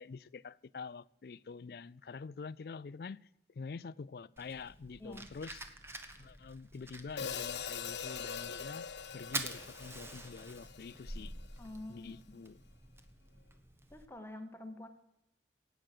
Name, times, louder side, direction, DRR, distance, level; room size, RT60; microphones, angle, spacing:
voice 1, 0.0-3.2 3.6-5.6 6.2-8.9 9.1-11.3 11.9-12.6, left 4 dB, 60° left, 0.4 m, -46 dB
Fire, 4.4-14.0, right 2 dB, 15° right, 1.0 m, -47 dB
voice 2, 5.0-5.3 11.6-12.4 13.9-14.9, left 1 dB, 15° left, 1.1 m, -47 dB
Hi-hat, 7.2-11.5, left 7 dB, 80° left, 0.9 m, -42 dB
16.0 x 9.0 x 6.8 m
head